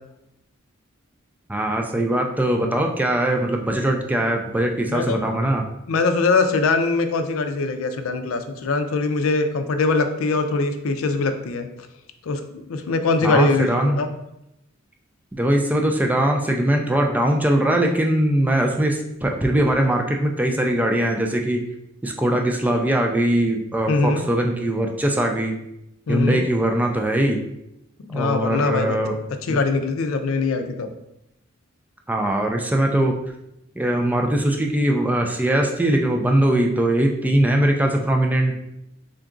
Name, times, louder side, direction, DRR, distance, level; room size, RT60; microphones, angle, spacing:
voice 1, 1.5-5.6 13.2-14.0 15.3-21.6 22.0-25.5 26.1-27.4 28.1-29.2 29.5-29.6 32.1-33.2 33.8-38.6, right 1 dB, 10° right, 2 dB, 0.3 m, -21 dB
voice 2, 5.9-11.7 12.2-14.1 23.9-24.2 26.1-26.4 28.0-29.0 29.4-30.9, left 3 dB, 90° left, 7 dB, 0.4 m, -22 dB
3.8 x 2.3 x 3.7 m, 0.84 s
head